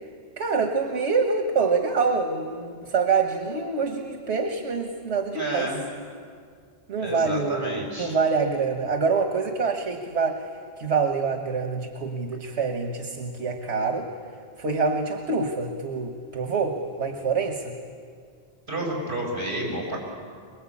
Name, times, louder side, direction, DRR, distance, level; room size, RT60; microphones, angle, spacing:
voice 1, 0.4-5.7 6.9-10.5 10.8-14.1 14.6-17.7, right 4 dB, 85° right, 4 dB, 1.6 m, -26 dB
voice 2, 5.3-5.8 7.0-8.2 18.7-20.0, right 1 dB, 50° right, -2 dB, 6.7 m, -30 dB
24.0 x 22.0 x 8.5 m, 2.1 s
omnidirectional pair, 1.1 m